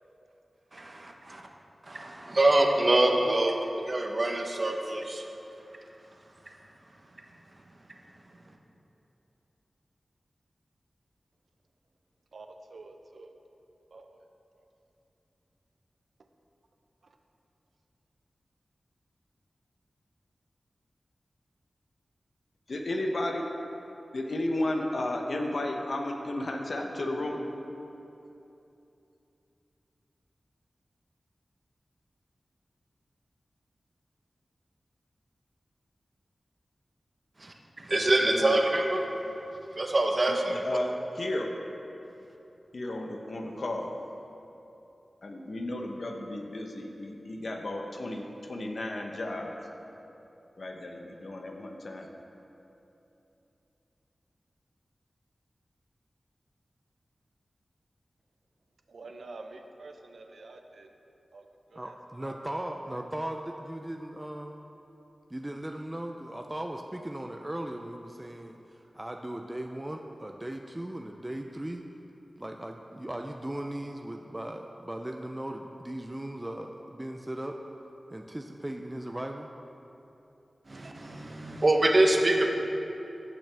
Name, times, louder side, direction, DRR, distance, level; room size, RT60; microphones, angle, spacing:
voice 1, 0.7-1.4 1.8-3.6 3.8-5.2 37.4-39.1 39.7-40.6 80.7-82.5, right 1 dB, 45° right, 2 dB, 1.0 m, -25 dB
voice 2, 12.3-13.3 13.9-14.2 17.0-17.2 58.9-60.9 61.3-61.5 61.7-61.9 62.2-62.4, right 3 dB, 85° right, 5 dB, 0.6 m, -47 dB
voice 3, 22.7-23.5 24.1-27.5 38.2-38.4 40.5-40.9 41.2-41.5 42.7-43.9 45.2-49.6 50.6-52.1, left 1 dB, 70° left, 2 dB, 0.8 m, -33 dB
voice 4, 61.7-64.6 65.3-68.6 68.9-71.8 72.4-77.6 78.1-79.5, right 1 dB, 20° right, 3 dB, 0.5 m, -38 dB
15.0 x 6.0 x 3.4 m, 2.9 s
cardioid pair, 50°, 0 cm